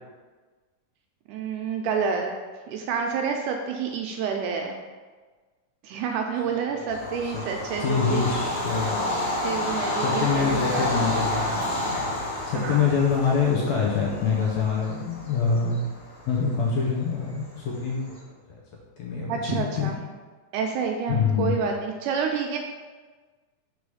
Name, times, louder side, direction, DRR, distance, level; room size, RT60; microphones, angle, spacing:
voice 1, 1.3-2.4 2.7-4.8 5.8-8.2 9.4-10.9 12.6-13.0 19.3-20.0 20.5-22.6, right 6 dB, 80° right, 2 dB, 1.9 m, -28 dB
voice 2, 6.5-6.8 7.3-7.4 7.8-9.0 10.0-11.6 12.5-15.8 16.3-18.2 18.5-18.6 19.0-19.9 21.1-21.6, left 5 dB, 75° left, -3 dB, 1.8 m, -25 dB
Bird vocalization bird call bird song / Train, 6.9-18.1, left 1 dB, 40° left, 2.1 m, -30 dB
4.8 x 4.7 x 5.5 m, 1.4 s
omnidirectional pair, 3.9 m